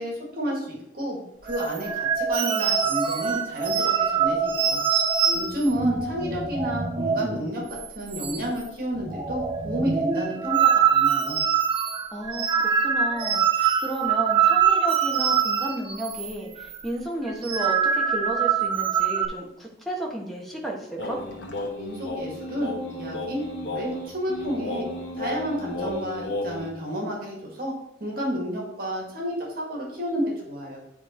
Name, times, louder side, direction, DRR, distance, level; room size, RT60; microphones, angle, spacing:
voice 1, 0.0-4.8 5.3-11.4 21.8-24.9 25.2-27.7 28.0-30.8, equal, 55° right, -2 dB, 1.9 m, -31 dB
sound 1, 1.5-7.4 7.7-7.9 8.1-8.7 9.0-16.3 16.6-16.8 17.3-19.3, right 7 dB, 30° right, 0.6 m, -24 dB
voice 2, 12.1-21.2, right 1 dB, ahead, -2 dB, 1.4 m, -33 dB
sound 2, 21.0-26.7, left 2 dB, 75° left, 1.3 m, -33 dB
9.6 x 3.4 x 4.4 m, 0.80 s
head